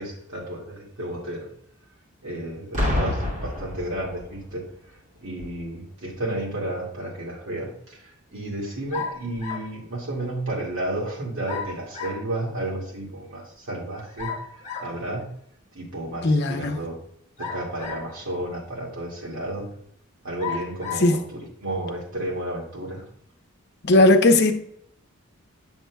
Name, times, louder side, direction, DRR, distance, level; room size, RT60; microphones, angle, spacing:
voice 1, 0.0-1.5 2.2-14.3 14.8-15.3 15.7-17.0 17.4-19.7 20.2-23.0, right 1 dB, 65° right, 2.1 m, -32 dB
Boom, 2.7-4.5 5.4-5.6, left 1 dB, 35° right, 2.3 m, -27 dB
sound 1, 8.9-9.8 11.5-12.3 14.2-15.0 17.4-18.2 19.0-19.1 20.4-21.1, left 5 dB, 30° left, 1.1 m, -34 dB
voice 2, 16.2-16.8 21.0-21.1 23.8-24.5, left 2 dB, 50° left, 0.7 m, -17 dB
7.7 x 7.1 x 2.3 m
head